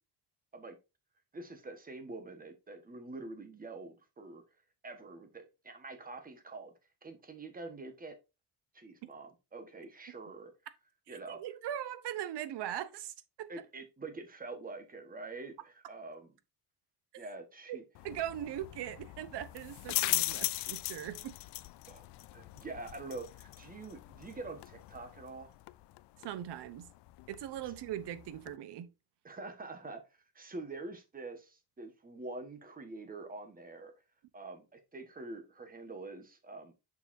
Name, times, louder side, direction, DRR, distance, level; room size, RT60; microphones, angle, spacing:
voice 1, 1.3-4.4 4.8-6.7 7.0-8.1 8.7-10.5 11.1-11.4 13.5-16.3 17.2-17.8 21.9-22.0 22.3-25.5 29.2-30.0 30.3-33.9 34.3-36.7, right 3 dB, 20° right, 1.4 m, -45 dB
voice 2, 11.3-13.5 17.1-17.3 17.7-21.4 26.2-26.9 27.3-28.9, right 11 dB, 75° right, 0.9 m, -40 dB
sound 1, 17.9-28.6, left 18 dB, 80° left, 0.5 m, -40 dB
6.7 x 6.6 x 2.7 m
cardioid pair, 150°, 41 cm